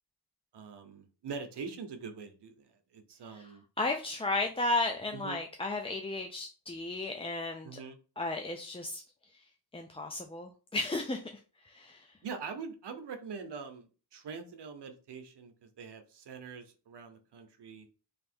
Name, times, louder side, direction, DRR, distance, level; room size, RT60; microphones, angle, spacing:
voice 1, 0.5-3.6 5.1-5.4 7.6-8.0 12.2-17.9, right 5 dB, 90° right, 6 dB, 0.8 m, -44 dB
voice 2, 3.8-7.8 8.2-9.0 9.7-11.3 11.6-12.2, left 2 dB, 15° left, 3 dB, 0.3 m, -34 dB
3.4 x 2.8 x 4.2 m, 0.36 s
wide cardioid pair, 135°, 40 cm